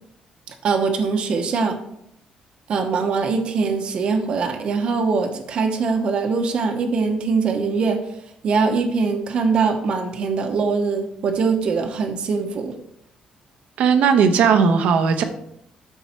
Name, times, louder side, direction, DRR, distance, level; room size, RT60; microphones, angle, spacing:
voice 1, 0.6-1.8 2.7-8.0 8.4-12.7, right 4 dB, 45° right, 5 dB, 1.1 m, -22 dB
voice 2, 13.8-15.2, right 6 dB, 75° right, 7 dB, 1.0 m, -17 dB
13.0 x 4.7 x 4.5 m, 0.75 s
cardioid pair, 170°, 2 cm